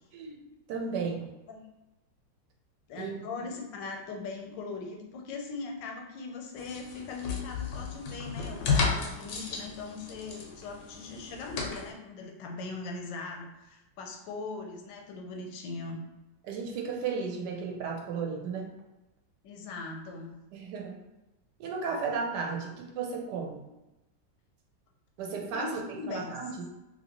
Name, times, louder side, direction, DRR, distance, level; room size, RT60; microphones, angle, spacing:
voice 1, 0.1-1.3 3.0-3.2 3.4-3.5 16.4-18.8 20.5-21.0 21.6-23.7 25.2-26.7, right 5 dB, 75° right, 1 dB, 1.2 m, -34 dB
voice 2, 2.9-16.0 19.4-20.4 25.3-26.4, left 4 dB, 85° left, 2 dB, 1.3 m, -40 dB
sound 1, 6.6-11.9, left 5 dB, 65° left, 0.8 m, -33 dB
2.8 x 2.8 x 2.9 m, 0.99 s
omnidirectional pair, 1.9 m